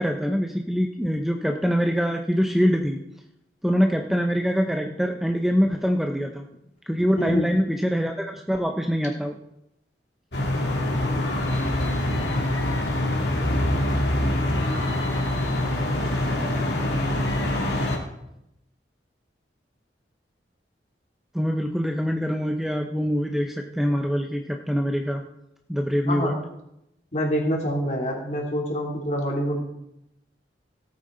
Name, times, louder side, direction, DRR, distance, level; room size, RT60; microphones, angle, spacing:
voice 1, 0.0-3.0 3.6-6.4 6.9-9.4 21.3-25.2 25.7-26.4, equal, ahead, 3 dB, 0.7 m, -24 dB
voice 2, 7.2-7.5 26.1-26.4 27.1-29.6, equal, 40° left, -1 dB, 3.0 m, -26 dB
sound 1, 10.3-18.0, left 1 dB, 75° left, 2.5 m, -24 dB
17.5 x 8.6 x 3.9 m, 0.84 s
head